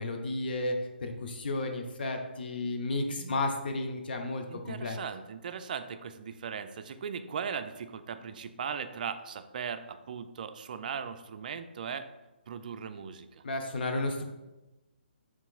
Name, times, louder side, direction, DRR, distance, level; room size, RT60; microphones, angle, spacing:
voice 1, 0.0-5.0 13.4-14.2, left 2 dB, 60° left, 4 dB, 0.6 m, -33 dB
voice 2, 4.5-12.1 12.5-13.4, right 6 dB, 50° right, 10 dB, 0.3 m, -38 dB
5.8 x 3.5 x 2.3 m, 1.1 s
figure-of-eight pair, 140°, 6 cm